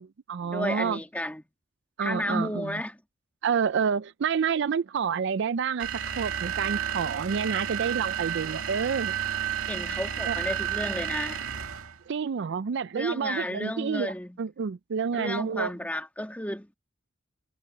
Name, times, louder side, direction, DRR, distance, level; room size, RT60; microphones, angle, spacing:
voice 1, 0.0-1.0 2.0-2.8 3.4-9.2 10.3-10.4 12.1-15.7, right 6 dB, 55° right, 0.4 m, -29 dB
voice 2, 0.5-1.4 2.0-3.0 9.7-11.4 12.9-14.4 15.1-16.7, left 1 dB, 5° left, 2.2 m, -32 dB
sound 1, 5.8-12.0, right 9 dB, 85° right, 1.9 m, -31 dB
head